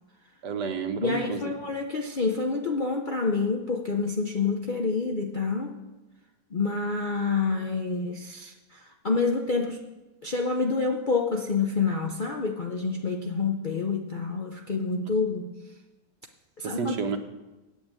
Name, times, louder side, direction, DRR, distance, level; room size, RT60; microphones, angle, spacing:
voice 1, 0.4-1.5 16.6-17.2, right 6 dB, 75° right, 6 dB, 1.6 m, -30 dB
voice 2, 1.0-5.8 6.5-9.8 10.2-15.6 16.6-17.2, left 4 dB, 50° left, 2 dB, 0.6 m, -28 dB
8.5 x 8.2 x 8.8 m, 1.1 s
omnidirectional pair, 1.8 m